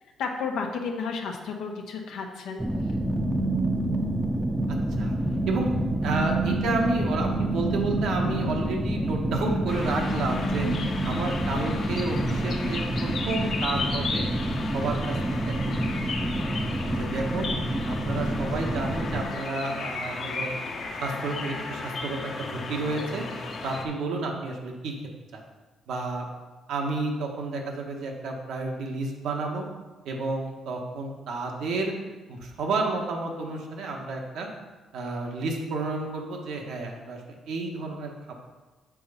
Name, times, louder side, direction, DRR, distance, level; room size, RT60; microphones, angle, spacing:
voice 1, 0.2-2.6, left 5 dB, 85° left, 1 dB, 0.9 m, -32 dB
sound 1, 2.6-19.2, right 1 dB, 15° right, 0.7 m, -28 dB
voice 2, 6.0-10.7 11.0-14.3 14.7-15.2 15.4-16.0 16.9-17.5 17.9-20.5 21.0-23.2 23.6-24.9 25.3-25.4 25.9-26.3 26.7-29.6 30.0-31.9 32.3-34.5 34.9-38.1, right 3 dB, 80° right, 1 dB, 1.4 m, -31 dB
sound 2, 9.7-23.9, left 3 dB, 60° left, 1.1 m, -35 dB
7.5 x 4.0 x 5.6 m, 1.3 s
cardioid pair, 90°, 0 cm